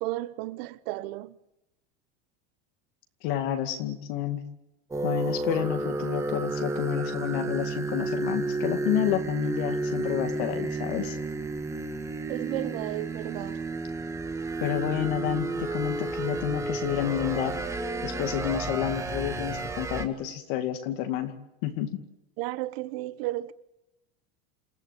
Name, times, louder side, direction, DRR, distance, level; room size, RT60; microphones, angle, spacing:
voice 1, 0.0-1.4 12.3-13.6 22.4-23.5, right 17 dB, 60° right, 1.2 m, -33 dB
voice 2, 3.2-4.4 5.0-11.2 14.6-17.6 18.0-21.3 21.6-22.0, left 11 dB, 55° left, 2.4 m, -30 dB
sound 1, 4.9-20.1, right 3 dB, 10° right, 1.7 m, -31 dB
28.5 x 16.0 x 9.2 m
cardioid pair, 180°, 33 cm